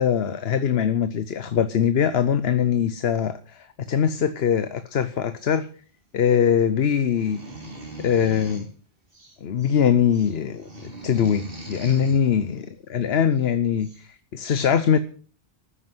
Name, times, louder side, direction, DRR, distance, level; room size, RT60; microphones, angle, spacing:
voice 1, 0.0-5.7 6.1-7.4 8.0-8.7 9.4-10.7 11.0-12.6 12.9-15.0, left 8 dB, 75° left, 1.1 m, -22 dB
sound 1, 7.1-8.7 9.1-9.8 10.1-12.2 13.4-13.5 13.8-14.1, right 1 dB, 60° right, 3.6 m, -40 dB
13.5 x 10.0 x 7.8 m
omnidirectional pair, 1.1 m